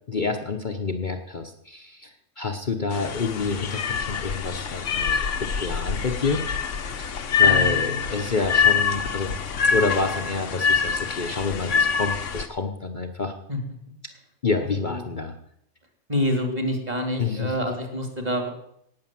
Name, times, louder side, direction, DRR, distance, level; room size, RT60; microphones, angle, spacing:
voice 1, 0.1-6.4 7.0-9.3 9.7-13.3 14.4-15.3 17.2-17.5, left 4 dB, 40° left, 4 dB, 1.1 m, -28 dB
sound 1, 2.9-12.5, left 6 dB, 65° left, 1.4 m, -25 dB
voice 2, 7.4-8.1 13.5-13.6 14.6-15.0 16.1-18.5, equal, 30° right, 4 dB, 2.7 m, -27 dB
18.0 x 6.8 x 7.6 m, 0.73 s
omnidirectional pair, 1.4 m